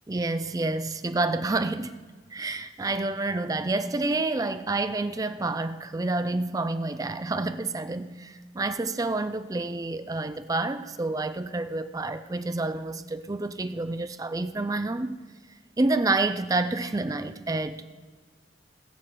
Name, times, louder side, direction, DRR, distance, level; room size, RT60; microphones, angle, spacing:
voice 1, 0.1-2.0 2.3-15.2 15.8-17.8, right 2 dB, 20° right, 0.4 m, -28 dB
19.5 x 7.2 x 4.9 m
head